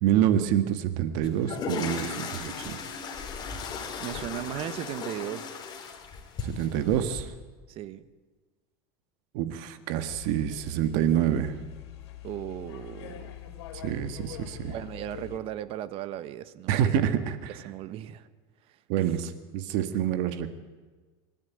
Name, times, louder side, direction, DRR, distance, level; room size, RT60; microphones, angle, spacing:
voice 1, 0.0-2.8 6.4-7.3 9.3-11.6 13.7-14.7 16.7-17.6 18.9-20.5, right 10 dB, 60° right, 10 dB, 1.7 m, -27 dB
sound 1, 1.2-7.2, left 5 dB, 30° left, 4.3 m, -36 dB
voice 2, 4.0-5.5 7.7-8.1 12.2-13.2 14.7-16.9 17.5-18.3 18.7-18.8, right 12 dB, 45° right, 14 dB, 1.3 m, -36 dB
sound 2, 10.1-15.4, left 11 dB, 85° left, 3.3 m, -44 dB
26.5 x 13.5 x 9.5 m, 1.3 s
supercardioid pair, 135°, 13 cm